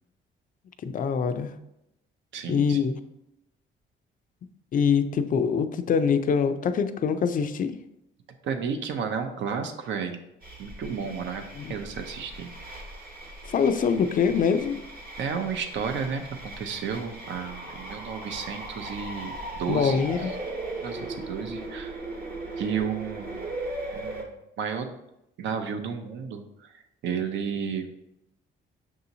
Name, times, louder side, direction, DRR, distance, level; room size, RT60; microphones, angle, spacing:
voice 1, 0.8-1.5 2.5-3.0 4.7-7.8 11.6-11.7 13.4-14.8 19.7-20.3, left 6 dB, 45° left, 10 dB, 0.4 m, -24 dB
voice 2, 2.3-2.8 8.4-10.2 10.6-11.4 11.7-12.5 15.2-20.0 20.8-22.0 22.6-23.4 23.9-24.9 25.4-27.9, right 6 dB, 70° right, 6 dB, 0.6 m, -32 dB
sound 1, 10.4-24.2, right 2 dB, 50° right, 1.0 m, -38 dB
6.0 x 2.8 x 2.7 m, 0.86 s
cardioid pair, 90°, 20 cm